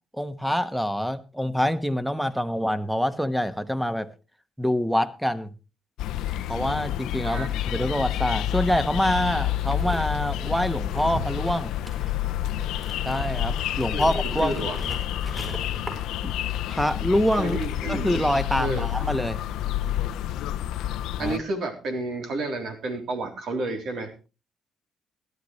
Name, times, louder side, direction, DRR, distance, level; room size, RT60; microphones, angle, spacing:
voice 1, 0.2-4.1 4.6-5.5 6.5-11.7 13.0-14.6 16.2-16.3 16.7-17.6 17.9-19.4 21.2-21.4, equal, ahead, 1.1 m, -26 dB
sound 1, 6.0-21.4, left 12 dB, 85° left, 0.6 m, -29 dB
sound 2, 9.4-16.7 16.9-18.2, right 2 dB, 20° right, 5.9 m, -40 dB
voice 2, 13.9-14.8 17.4-18.2 18.5-18.9 21.2-24.3, right 2 dB, 70° right, 3.4 m, -31 dB
16.0 x 12.0 x 3.2 m
cardioid pair, 90°, 0 cm